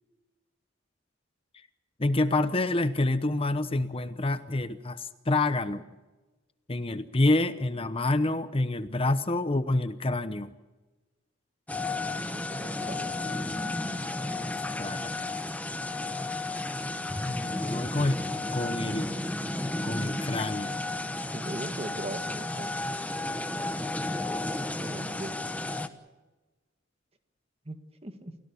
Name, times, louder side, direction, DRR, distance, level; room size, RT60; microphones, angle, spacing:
voice 1, 2.0-5.8 6.7-10.5 14.8-15.1 17.3-18.2 18.5-19.1 19.8-20.8, left 2 dB, 30° left, 12 dB, 0.9 m, -27 dB
sound 1, 11.7-25.9, left 2 dB, 10° left, 1.2 m, -33 dB
voice 2, 12.3-13.2 21.3-22.7 24.8-25.4 27.7-28.3, right 1 dB, 30° right, 8 dB, 1.9 m, -40 dB
29.0 x 17.0 x 7.0 m, 1.2 s
head